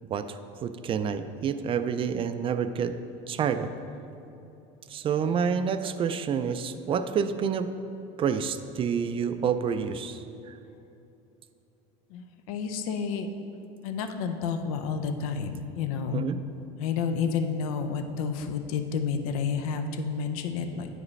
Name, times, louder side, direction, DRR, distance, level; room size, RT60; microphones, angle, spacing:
voice 1, 0.1-2.9 3.3-3.7 4.9-7.7 8.2-10.6 16.1-16.4, right 7 dB, 30° right, 10 dB, 0.3 m, -28 dB
voice 2, 12.1-13.3 13.8-16.3 16.8-20.9, left 6 dB, 85° left, 7 dB, 0.5 m, -30 dB
9.5 x 5.0 x 3.2 m, 2.9 s
supercardioid pair, 110°, 18 cm